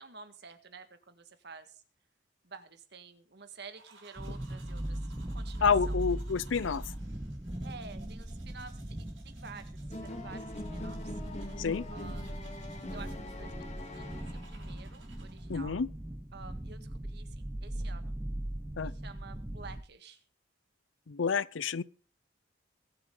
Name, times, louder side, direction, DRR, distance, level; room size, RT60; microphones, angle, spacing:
voice 1, 0.0-1.8 2.4-6.0 7.6-11.2 11.9-12.5 12.9-13.7 13.9-15.8 16.3-18.2 18.8-20.2, right 4 dB, 60° right, 1.7 m, -50 dB
sound 1, 3.7-15.7, right 4 dB, 85° right, 5.9 m, -60 dB
sound 2, 4.2-19.8, right 1 dB, 15° right, 0.7 m, -39 dB
voice 2, 5.6-6.9 11.6-11.9 15.5-15.9 18.8-18.9 21.1-21.8, left 5 dB, 85° left, 0.6 m, -29 dB
sound 3, 9.9-14.8, left 2 dB, 35° left, 1.9 m, -44 dB
22.5 x 8.0 x 3.8 m
head